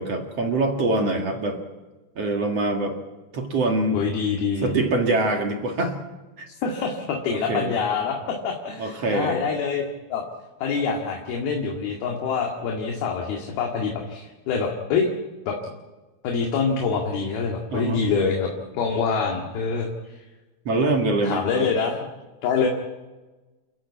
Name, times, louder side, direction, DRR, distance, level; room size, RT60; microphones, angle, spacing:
voice 1, 0.0-1.6 2.2-2.9 3.3-4.0 4.6-6.0 6.4-6.5 7.3-7.7 8.8-9.4 17.7-18.1 20.7-21.7, right 2 dB, 50° right, 3 dB, 2.0 m, -24 dB
voice 2, 3.9-4.7 6.5-9.8 10.1-10.2 10.6-15.1 15.5-15.6 16.2-20.2 21.2-22.1 22.4-22.7, left 5 dB, 60° left, 1 dB, 3.6 m, -25 dB
30.0 x 14.5 x 8.5 m, 1.2 s
omnidirectional pair, 5.5 m